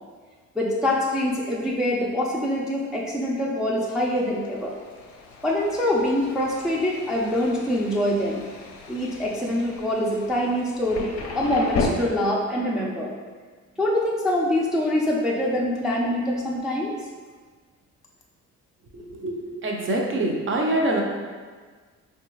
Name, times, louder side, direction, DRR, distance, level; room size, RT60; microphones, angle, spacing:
voice 1, 0.6-4.7 5.4-8.4 8.9-13.1 13.8-16.9, left 1 dB, ahead, -4 dB, 0.4 m, -24 dB
Thunder, 3.7-11.9, left 5 dB, 50° left, 0.5 m, -36 dB
voice 2, 18.9-21.0, right 1 dB, 40° right, 0 dB, 0.6 m, -25 dB
3.4 x 2.3 x 3.1 m, 1.5 s
cardioid pair, 90°, 30 cm